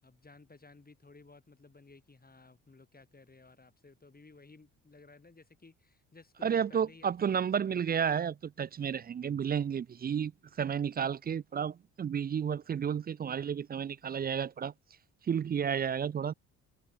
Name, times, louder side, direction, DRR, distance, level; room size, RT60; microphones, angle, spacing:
voice 1, 0.0-8.0, left 3 dB, 25° left, 4.7 m, -57 dB
voice 2, 6.4-10.3 10.6-14.7 15.3-16.3, right 8 dB, 25° right, 0.4 m, -32 dB
hypercardioid pair, 55°, 39 cm